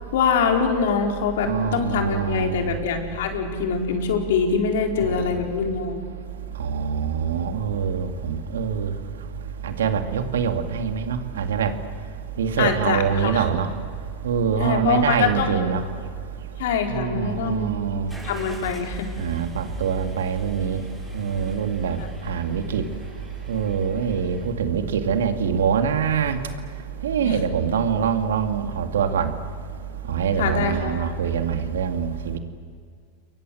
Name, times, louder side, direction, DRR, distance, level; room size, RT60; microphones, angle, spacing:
voice 1, 0.1-6.1 12.6-13.4 14.6-15.6 16.6-17.7 18.2-19.1 22.0-22.1 27.2-27.4 30.4-31.1, left 6 dB, 75° left, 3 dB, 4.4 m, -24 dB
voice 2, 1.4-2.7 5.0-5.4 6.6-8.9 9.6-11.7 12.4-13.7 14.2-15.8 16.9-18.1 19.2-20.8 21.1-22.0 22.3-22.8 23.5-26.4 27.0-29.3 30.1-32.4, right 7 dB, 85° right, 7 dB, 2.3 m, -24 dB
Car / Engine starting, 18.1-24.5, left 2 dB, ahead, 6.8 m, -41 dB
29.0 x 23.0 x 7.9 m, 2.1 s
hypercardioid pair, 110°, 0 cm